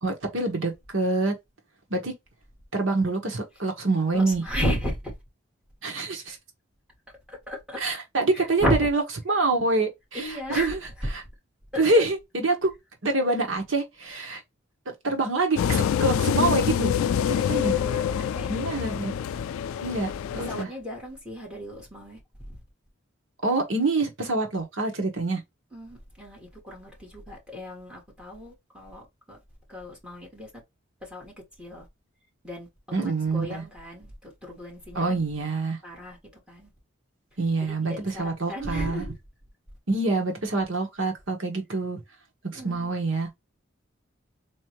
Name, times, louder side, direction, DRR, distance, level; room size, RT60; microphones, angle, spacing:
voice 1, 0.0-1.3 1.9-2.1 2.7-4.4 5.8-6.4 7.8-10.8 11.1-11.2 11.8-12.7 13.0-14.4 15.0-16.9 17.2-17.7 18.5-19.2 19.8-20.7 23.4-25.4 32.9-33.6 34.9-35.8 37.4-39.1 39.9-42.0 42.4-43.3, right 3 dB, 70° right, 1.3 m, -26 dB
voice 2, 4.1-5.1 7.5-7.8 8.3-8.9 10.1-11.1 11.7-12.1 17.7-18.0 18.3-18.6 20.5-22.2 22.5-22.6 25.7-29.0 29.3-29.4 29.7-30.5 31.0-31.3 31.6-31.9 32.4-32.7 33.0-35.2 35.8-36.2 36.5-36.7 37.8-39.2 42.5-42.9, equal, 5° right, 1.7 m, -34 dB
sound 1, 15.6-20.6, left 8 dB, 80° left, 0.3 m, -26 dB
3.8 x 3.1 x 3.0 m
head